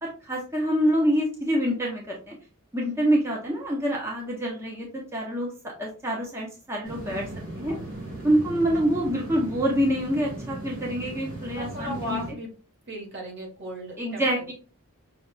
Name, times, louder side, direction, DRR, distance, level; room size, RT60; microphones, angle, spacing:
voice 1, 0.0-2.4 2.7-5.5 5.8-7.2 7.6-7.7 8.2-12.2 14.0-14.5, equal, 10° right, -3 dB, 0.6 m, -26 dB
sound 1, 6.8-12.3, right 1 dB, 70° right, 1.8 m, -37 dB
voice 2, 11.6-12.5 12.9-14.5, equal, 55° right, -1 dB, 1.3 m, -36 dB
5.6 x 2.3 x 2.3 m, 0.38 s
head